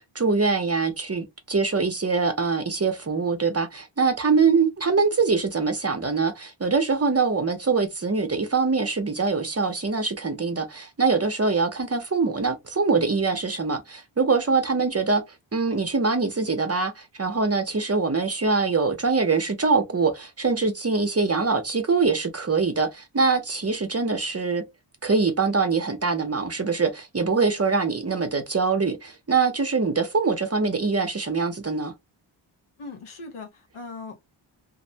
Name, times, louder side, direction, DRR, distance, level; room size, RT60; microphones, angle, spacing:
voice 1, 0.1-15.2 15.5-24.6 25.0-31.9, right 4 dB, 30° right, 0.6 m, -23 dB
voice 2, 32.8-34.2, left 3 dB, 80° left, 0.8 m, -39 dB
2.5 x 2.1 x 2.6 m
wide cardioid pair, 55°, 50 cm